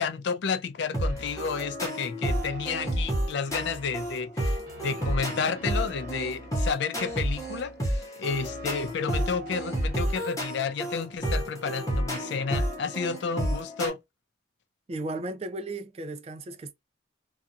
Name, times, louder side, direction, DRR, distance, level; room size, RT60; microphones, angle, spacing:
voice 1, 0.0-14.0, left 5 dB, 60° left, 0.3 m, -31 dB
sound 1, 0.9-13.9, equal, 15° left, 0.8 m, -30 dB
sound 2, 1.1-1.9 2.3-3.1 3.5-6.7 7.1-7.9 8.3-10.5, equal, 45° right, 1.1 m, -47 dB
voice 2, 14.9-16.7, right 2 dB, 30° right, 0.4 m, -35 dB
2.7 x 2.3 x 2.4 m
head